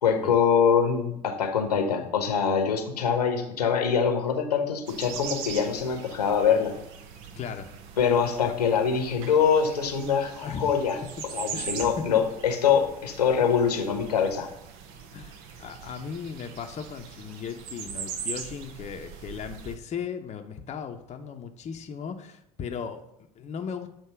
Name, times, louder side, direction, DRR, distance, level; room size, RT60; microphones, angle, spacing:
voice 1, 0.0-6.7 8.0-11.0 11.3-14.5, left 7 dB, 85° left, 4 dB, 1.0 m, -24 dB
sound 1, 4.9-19.8, right 7 dB, 60° right, 0.8 m, -41 dB
voice 2, 7.3-7.7 10.4-10.7 11.5-12.1 15.1-23.9, left 7 dB, 35° left, 5 dB, 0.7 m, -37 dB
7.4 x 2.9 x 5.7 m, 0.80 s
hypercardioid pair, 70°, 20 cm